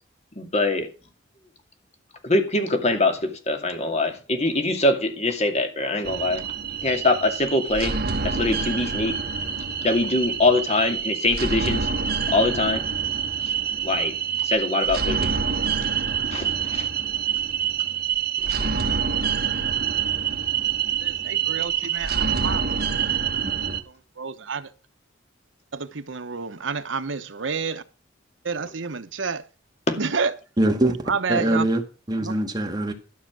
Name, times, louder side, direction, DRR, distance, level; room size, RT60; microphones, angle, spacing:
voice 1, 0.4-0.9 2.2-6.4 6.8-8.0 8.2-9.1 9.8-11.9 12.3-12.8 13.4-13.5 13.8-14.1 14.4-15.3 16.3-16.9 18.4-18.7 29.9-30.0, left 2 dB, 35° left, 2.5 m, -23 dB
sound 1, 6.0-23.8, right 7 dB, 55° right, 1.5 m, -26 dB
voice 2, 21.0-22.7 23.9-24.7 25.7-27.8 28.4-29.4 30.0-30.3 30.9-31.7 32.2-32.3, right 5 dB, 75° right, 1.0 m, -29 dB
voice 3, 30.6-31.8 32.1-32.9, right 1 dB, 20° right, 2.0 m, -23 dB
13.0 x 6.5 x 6.0 m
head